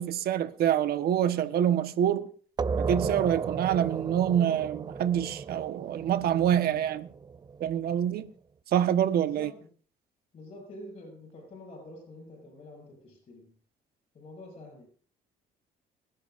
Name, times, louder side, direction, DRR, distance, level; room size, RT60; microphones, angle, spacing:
voice 1, 0.0-2.3 2.8-7.1 7.6-8.3 8.7-9.5, right 10 dB, 65° right, 1.3 m, -26 dB
sound 1, 2.6-7.9, right 5 dB, 25° right, 0.6 m, -34 dB
voice 2, 9.2-9.7 10.3-13.6 14.1-14.9, left 1 dB, 35° left, 7.1 m, -47 dB
28.0 x 11.5 x 2.6 m
cardioid pair, 110°, 17 cm